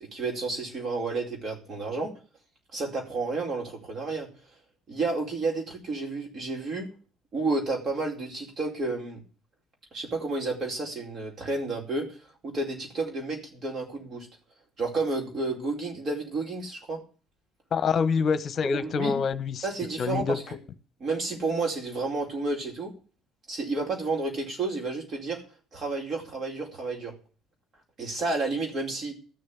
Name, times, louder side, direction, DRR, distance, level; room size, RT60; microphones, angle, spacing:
voice 1, 0.0-2.1 2.7-4.3 4.9-6.9 7.3-9.2 9.9-12.1 12.4-14.3 14.8-17.0 18.7-19.2 19.6-20.6 21.0-22.9 23.5-25.4 25.7-27.1 28.0-29.1, right 3 dB, 40° right, 0 dB, 4.7 m, -31 dB
voice 2, 17.7-19.6 20.0-20.4, left 5 dB, 40° left, 14 dB, 1.2 m, -26 dB
14.5 x 6.7 x 8.4 m, 0.38 s
figure-of-eight pair, 55°, 0 cm